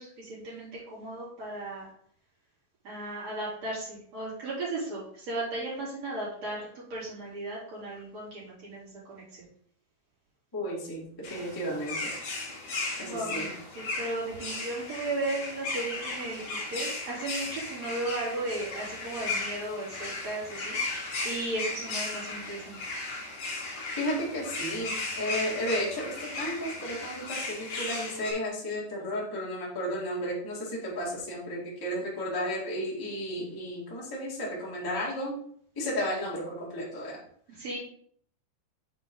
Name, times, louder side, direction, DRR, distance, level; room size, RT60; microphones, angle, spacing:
voice 1, 0.0-1.9 2.8-9.4 13.0-22.8 37.5-37.8, right 2 dB, 40° right, -8 dB, 4.1 m, -36 dB
voice 2, 10.5-12.1 13.0-13.5 24.0-35.3 35.7-37.2, equal, 20° left, -6 dB, 0.5 m, -33 dB
sound 1, 11.2-28.3, left 2 dB, 50° left, 2.0 m, -36 dB
7.6 x 4.9 x 3.9 m, 0.62 s
omnidirectional pair, 5.2 m